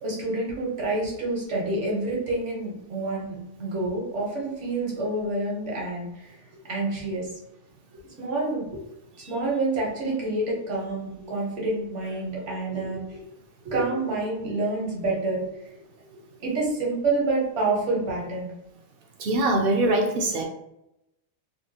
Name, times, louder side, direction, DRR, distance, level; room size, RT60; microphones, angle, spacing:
voice 1, 0.0-7.3 7.9-8.6 9.3-13.2 13.6-16.1 16.4-18.5, right 2 dB, 80° right, -3 dB, 1.4 m, -28 dB
voice 2, 19.2-20.4, right 2 dB, 60° right, 3 dB, 0.6 m, -22 dB
3.6 x 2.2 x 2.7 m, 0.85 s
omnidirectional pair, 1.2 m